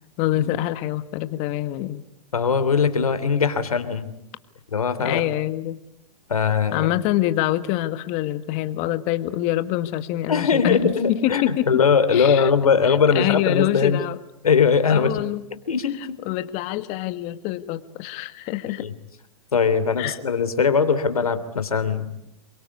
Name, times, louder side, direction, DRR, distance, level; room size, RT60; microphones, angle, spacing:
voice 1, 0.2-2.0 5.0-5.8 6.7-11.7 12.1-12.5 13.1-14.2 14.9-15.4 16.2-18.9 20.0-20.2, left 15 dB, 40° left, 11 dB, 1.8 m, -25 dB
voice 2, 2.3-4.1 4.7-5.2 6.3-6.9 10.3-14.0 14.4-15.1 15.7-16.2 18.8-18.9 19.5-22.1, left 6 dB, 90° left, 11 dB, 3.1 m, -20 dB
27.5 x 24.0 x 8.4 m, 0.80 s
hypercardioid pair, 120°, 18 cm